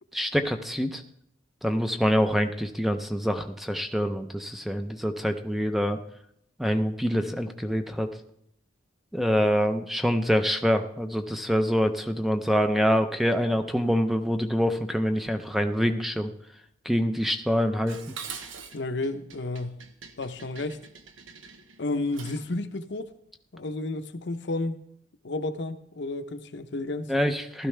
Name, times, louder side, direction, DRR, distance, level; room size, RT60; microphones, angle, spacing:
voice 1, 0.1-1.0 1.6-6.0 6.6-8.2 9.1-16.3 16.8-18.0 18.4-18.5 27.1-27.7, equal, ahead, 0.6 m, -25 dB
Dishes pots and pans, 17.9-22.6, right 6 dB, 80° right, 1.0 m, -44 dB
voice 2, 18.7-19.7 20.2-20.8 21.8-23.1 23.5-24.8 25.2-27.1, left 2 dB, 60° left, 0.8 m, -31 dB
15.5 x 12.5 x 3.3 m
head